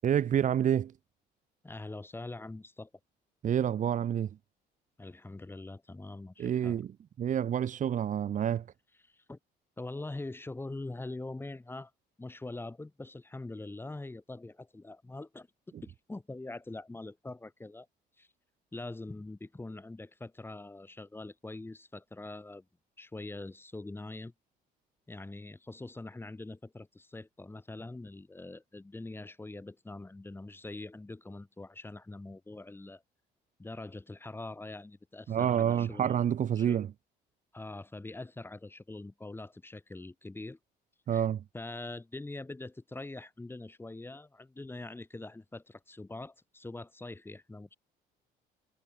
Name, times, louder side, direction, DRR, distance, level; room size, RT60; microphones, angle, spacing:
voice 1, 0.0-0.9 3.4-4.3 6.4-6.9 7.2-8.7 35.3-36.9 41.1-41.4, right 9 dB, 50° right, 1.7 m, -28 dB
voice 2, 1.6-2.9 5.0-6.8 9.0-9.4 9.8-11.9 12.2-15.5 15.8-17.9 18.2-18.3 18.7-22.6 23.0-24.3 25.1-33.0 33.6-36.2 36.6-36.8 37.5-40.6 41.1-41.3 41.5-47.7, left 2 dB, 15° left, 6.7 m, -43 dB
cardioid pair, 110°, 17 cm